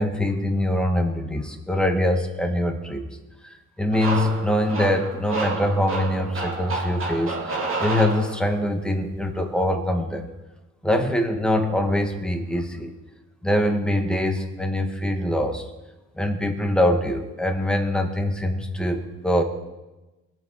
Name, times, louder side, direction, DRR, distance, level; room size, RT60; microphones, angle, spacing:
voice 1, 0.0-3.1 3.4-10.3 10.8-12.9 13.4-15.6 16.2-19.4, left 1 dB, 5° left, 3 dB, 1.9 m, -24 dB
sound 1, 3.9-8.7, right 3 dB, 45° right, 2.9 m, -29 dB
20.5 x 7.5 x 4.8 m, 1.1 s
cardioid pair, 90°, 30 cm